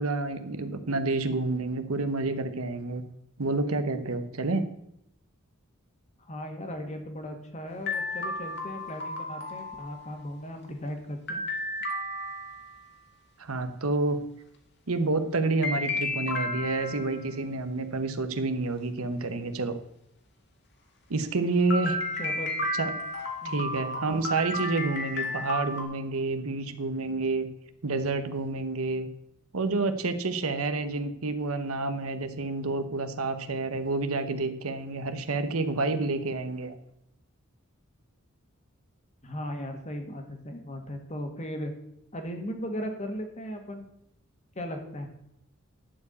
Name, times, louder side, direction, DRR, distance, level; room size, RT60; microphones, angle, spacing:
voice 1, 0.0-3.0 3.4-4.6 13.4-14.2 14.9-19.8 21.1-22.0 22.8-22.9 23.5-27.5 27.8-29.1 29.5-36.7, right 3 dB, 85° right, 9 dB, 1.0 m, -29 dB
voice 2, 6.2-11.4 22.2-22.5 23.4-23.8 39.2-41.7 42.1-43.9 44.6-45.1, equal, 35° left, 4 dB, 1.7 m, -37 dB
sound 1, 7.9-10.3 11.3-12.9 15.6-17.3 21.7-25.8, left 1 dB, 50° left, 2.0 m, -33 dB
11.5 x 4.8 x 8.2 m, 0.77 s
head